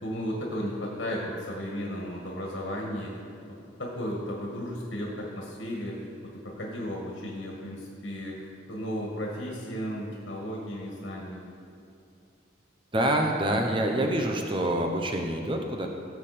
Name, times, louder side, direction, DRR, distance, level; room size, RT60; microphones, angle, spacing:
voice 1, 0.0-3.2 3.8-11.5, equal, 75° left, -2 dB, 1.9 m, -34 dB
voice 2, 12.9-15.9, right 1 dB, 25° right, 3 dB, 1.0 m, -26 dB
17.0 x 7.2 x 4.3 m, 2.7 s
head